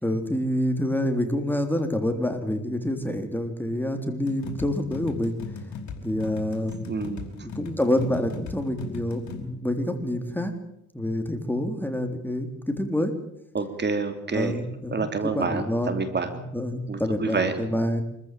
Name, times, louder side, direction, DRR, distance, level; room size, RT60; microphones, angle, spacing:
voice 1, 0.0-5.4 6.0-6.7 7.4-10.5 10.9-13.1 14.3-15.1 15.4-15.9 16.5-18.0, left 1 dB, 5° left, 6 dB, 3.7 m, -27 dB
sound 1, 4.3-9.4, left 4 dB, 70° left, 5.0 m, -38 dB
voice 2, 6.9-7.3 13.5-14.6 14.9-16.3 16.9-17.5, right 4 dB, 35° right, 8 dB, 3.0 m, -28 dB
25.5 x 15.0 x 9.1 m, 0.77 s
cardioid pair, 90°, 30 cm